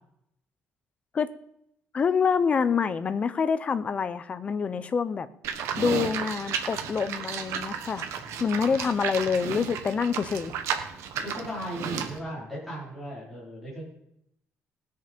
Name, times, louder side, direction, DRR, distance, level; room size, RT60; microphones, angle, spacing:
voice 1, 1.9-5.3 5.8-8.1 8.4-10.5, left 6 dB, 25° left, 13 dB, 0.6 m, -26 dB
Livestock farm animals working animals, 5.4-12.2, right 7 dB, 80° right, 1.4 m, -33 dB
voice 2, 11.2-13.9, equal, ahead, -7 dB, 4.2 m, -37 dB
19.5 x 6.6 x 5.3 m, 0.77 s
cardioid pair, 175°, 5 cm